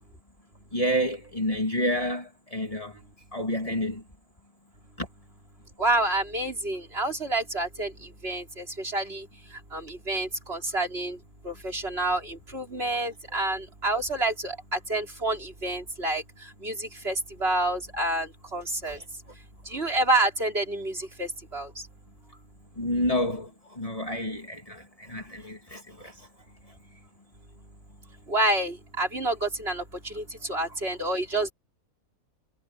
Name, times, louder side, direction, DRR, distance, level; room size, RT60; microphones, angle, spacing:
voice 1, 0.7-3.0 3.3-4.0 5.0-5.1 18.9-19.0 22.8-26.3, equal, 25° left, 2.8 m, -29 dB
voice 2, 5.8-7.9 8.2-9.3 9.7-11.2 11.4-16.2 16.6-19.0 19.7-21.7 28.3-31.5, right 2 dB, 45° right, 4.8 m, -28 dB
omnidirectional pair, 1.4 m